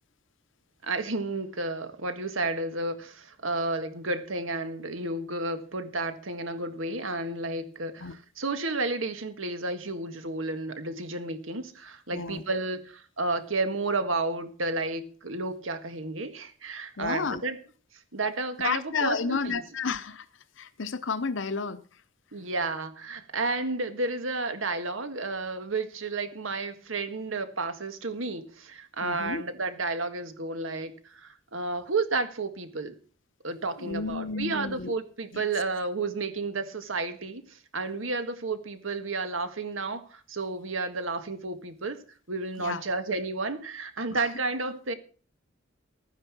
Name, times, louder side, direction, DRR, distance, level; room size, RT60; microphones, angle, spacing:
voice 1, 0.8-17.6 18.1-19.6 22.3-33.0 33.4-42.0 42.3-44.9, right 3 dB, 75° right, 1.7 m, -32 dB
voice 2, 12.1-12.4 17.0-17.4 18.6-22.0 29.0-29.4 33.8-34.9 35.3-35.4 42.6-42.8 44.1-44.3, left 4 dB, 65° left, 0.8 m, -32 dB
13.0 x 9.9 x 6.0 m
head